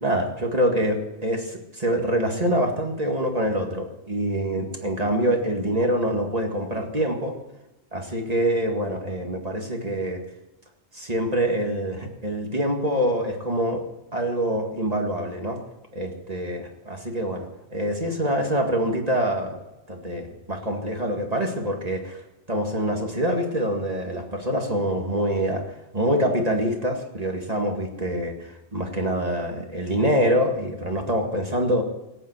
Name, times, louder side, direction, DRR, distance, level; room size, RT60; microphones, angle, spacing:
voice 1, 0.0-7.4 7.9-10.2 10.9-13.8 14.1-15.6 15.9-17.5 17.7-19.6 19.9-22.2 22.5-25.6 25.9-31.8, equal, 35° right, 2 dB, 2.1 m, -25 dB
17.0 x 9.1 x 8.1 m, 0.95 s
omnidirectional pair, 1.2 m